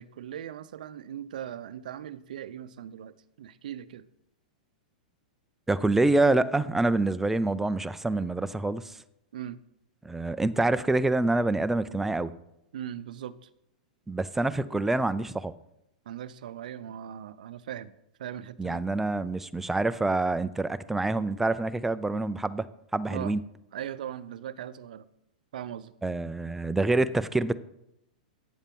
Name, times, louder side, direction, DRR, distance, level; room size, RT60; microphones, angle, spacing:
voice 1, 0.0-4.1 9.3-9.6 12.7-13.5 16.1-17.9 18.2-18.8 23.1-23.4 23.7-25.1 25.5-25.9, right 10 dB, 70° right, 16 dB, 0.6 m, -39 dB
voice 2, 5.7-9.0 10.0-12.3 14.1-15.5 18.6-22.7 22.9-23.4 26.0-27.5, right 2 dB, 5° right, 13 dB, 0.4 m, -26 dB
9.3 x 7.3 x 5.3 m, 0.82 s
hypercardioid pair, 125°, 5 cm